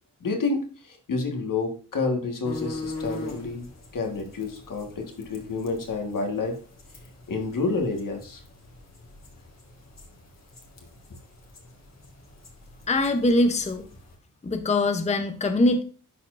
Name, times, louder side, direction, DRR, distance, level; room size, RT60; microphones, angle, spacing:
voice 1, 0.2-3.7 3.9-6.6 7.3-8.4, left 3 dB, 70° left, 3 dB, 1.5 m, -29 dB
sound 1, 2.4-14.2, left 2 dB, 50° left, 1.6 m, -42 dB
voice 2, 12.9-13.9 14.4-15.8, left 2 dB, 20° left, 7 dB, 0.6 m, -22 dB
11.0 x 4.3 x 2.5 m, 0.39 s
cardioid pair, 75°, 34 cm